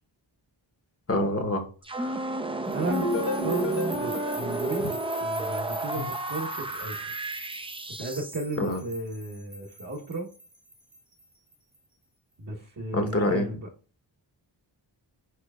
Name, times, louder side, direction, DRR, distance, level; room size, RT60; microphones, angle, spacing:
voice 1, 1.1-1.6 2.0-2.3 4.8-4.9 6.0-6.1 8.6-8.8 12.9-13.5, left 1 dB, 30° left, 5 dB, 1.0 m, -27 dB
sound 1, 1.8-8.5, right 2 dB, 10° right, 0.5 m, -32 dB
voice 2, 2.7-3.7 4.0-4.9 5.2-7.0 8.0-10.3 12.4-13.7, right 2 dB, 40° right, -3 dB, 1.1 m, -34 dB
sound 2, 2.7-11.8, right 1 dB, 55° right, 1.6 m, -44 dB
sound 3, 2.9-5.8, left 2 dB, 80° left, 1.4 m, -33 dB
4.5 x 4.5 x 2.3 m, 0.38 s
cardioid pair, 40°, 48 cm